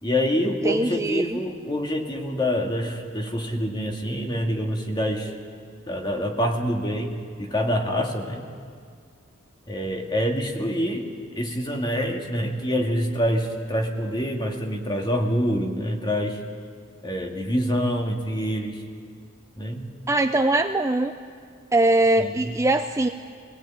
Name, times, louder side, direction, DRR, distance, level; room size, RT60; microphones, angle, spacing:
voice 1, 0.0-5.3 5.9-8.4 9.7-11.1 11.4-16.4 17.0-18.8 19.6-19.9 22.2-22.6, equal, 20° left, 2 dB, 2.1 m, -26 dB
voice 2, 0.6-1.4 20.1-21.1 21.7-23.1, right 2 dB, 15° right, 6 dB, 0.5 m, -21 dB
22.5 x 18.0 x 8.9 m, 2.1 s
head